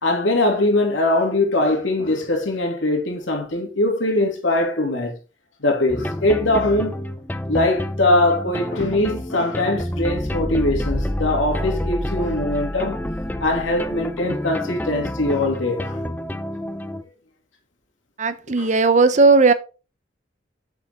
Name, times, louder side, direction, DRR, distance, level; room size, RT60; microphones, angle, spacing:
voice 1, 0.0-5.2 5.6-6.9 7.5-13.0 13.4-16.0 18.6-18.7, left 2 dB, 90° left, 2.7 m, -21 dB
sound 1, 5.9-17.0, left 1 dB, 10° left, 0.5 m, -28 dB
voice 2, 18.2-19.5, right 3 dB, 40° right, 0.7 m, -16 dB
7.6 x 6.9 x 3.6 m
head